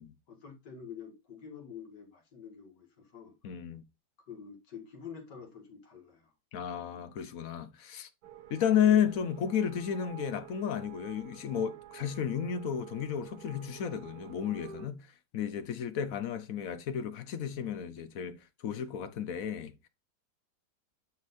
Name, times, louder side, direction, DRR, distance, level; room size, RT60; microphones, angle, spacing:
voice 1, 0.3-3.5 4.3-6.3, left 7 dB, 80° left, 2.5 m, -47 dB
voice 2, 3.4-3.8 6.5-8.1 8.5-18.4 18.6-19.9, left 8 dB, 60° left, 1.0 m, -32 dB
sound 1, 8.2-14.9, right 10 dB, 70° right, 1.1 m, -50 dB
9.6 x 4.0 x 2.6 m
omnidirectional pair, 1.8 m